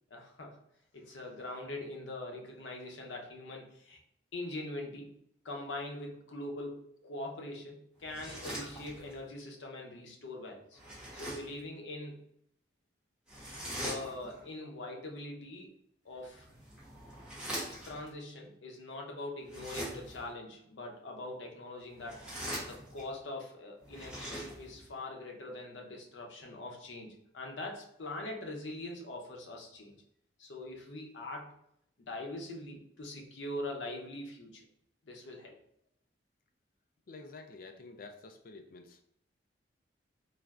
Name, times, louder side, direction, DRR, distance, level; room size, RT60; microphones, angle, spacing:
voice 1, 0.1-0.6 0.9-4.0 4.3-5.1 5.4-10.8 11.1-12.2 13.7-15.7 16.0-16.5 17.9-22.2 22.6-29.9 30.4-31.5 32.0-34.6 35.1-35.6, left 2 dB, 90° left, 1 dB, 0.6 m, -42 dB
sound 1, 8.0-9.2 10.7-11.6 13.3-14.4 16.2-18.1 19.4-20.3 21.9-23.2 23.8-24.9, equal, 5° right, 0.9 m, -42 dB
voice 2, 37.1-39.0, left 3 dB, 50° left, 5 dB, 0.3 m, -49 dB
3.2 x 2.4 x 2.3 m, 0.72 s
head